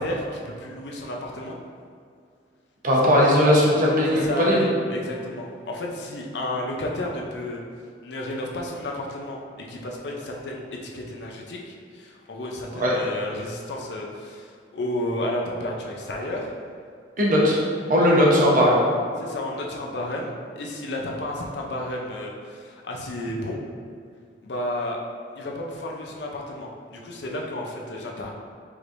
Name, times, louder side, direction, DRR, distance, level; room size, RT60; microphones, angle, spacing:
voice 1, 0.0-1.6 4.1-7.6 8.0-9.4 9.7-16.5 17.4-17.6 19.2-23.6 24.4-25.0 25.4-28.3, left 1 dB, 70° left, -1 dB, 0.6 m, -32 dB
voice 2, 2.8-4.6 12.7-12.9 17.2-17.6 17.9-18.8, equal, 50° right, -4 dB, 0.9 m, -18 dB
4.8 x 3.1 x 2.6 m, 2.3 s
head